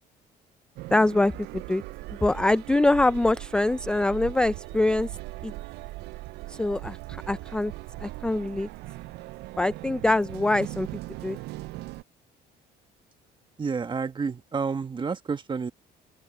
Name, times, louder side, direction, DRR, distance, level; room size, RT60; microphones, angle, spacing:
sound 1, 0.8-12.0, right 19 dB, 80° right, 0.4 m, -39 dB
voice 1, 0.9-1.8 2.2-5.1 5.4-5.5 6.5-7.7 8.0-8.7 9.6-10.9 11.2-11.4, left 2 dB, 5° left, 0.3 m, -24 dB
voice 2, 13.6-15.7, right 5 dB, 30° right, 1.5 m, -30 dB
open air
cardioid pair, 110°, 17 cm